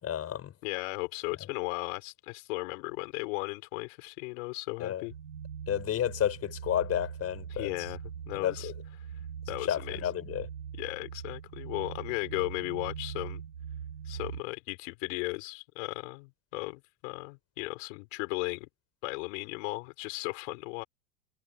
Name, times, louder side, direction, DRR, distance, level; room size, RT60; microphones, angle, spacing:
voice 1, 0.0-0.5 4.8-5.0 5.7-7.7 8.3-8.7 9.7-10.5, left 10 dB, 30° left, 5.2 m, -31 dB
voice 2, 0.6-5.1 7.5-8.0 8.3-8.7 9.5-10.0 10.8-13.4 14.1-18.7 19.0-20.8, left 27 dB, 55° left, 5.7 m, -36 dB
sound 1, 5.1-14.4, right 8 dB, 80° right, 6.3 m, -42 dB
figure-of-eight pair, 90°, 45 cm